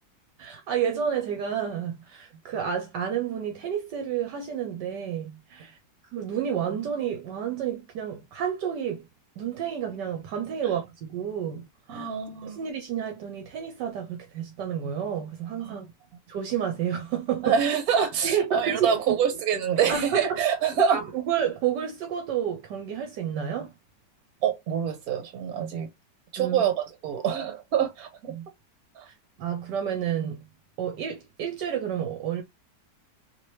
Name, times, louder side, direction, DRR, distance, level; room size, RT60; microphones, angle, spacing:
voice 1, 0.4-5.8 6.1-9.1 9.4-12.1 12.4-15.9 16.3-17.6 18.2-19.2 19.9-20.4 20.9-23.7 26.4-26.6 28.3-28.4 29.4-30.5 30.8-32.4, right 8 dB, 75° right, 1.3 m, -30 dB
voice 2, 11.9-12.6 15.6-15.8 17.4-21.0 24.4-25.9 26.3-28.3 29.0-29.1, right 7 dB, 60° right, 1.4 m, -26 dB
3.1 x 2.9 x 3.1 m
omnidirectional pair, 1.9 m